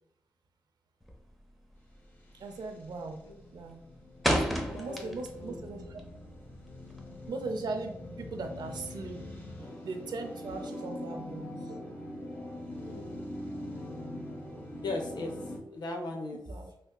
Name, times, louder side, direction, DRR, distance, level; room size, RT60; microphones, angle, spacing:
sound 1, 1.0-1.4 1.7-2.1 2.4-2.8 3.2-5.5 5.8-7.3, equal, ahead, 0.6 m, -31 dB
Elegant Glitchy Introduction, 2.3-15.6, left 1 dB, 25° left, 1.0 m, -43 dB
voice 1, 2.3-3.2 3.5-3.8 4.2-6.0 7.3-9.2 9.8-12.4 16.3-16.7, right 3 dB, 75° right, 5 dB, 0.5 m, -39 dB
voice 2, 4.3-5.6 10.6-10.8 12.8-13.2 14.8-15.4 15.7-16.4, left 2 dB, 75° left, 3 dB, 0.6 m, -39 dB
3.3 x 2.7 x 2.2 m, 0.76 s
supercardioid pair, 40°, 7 cm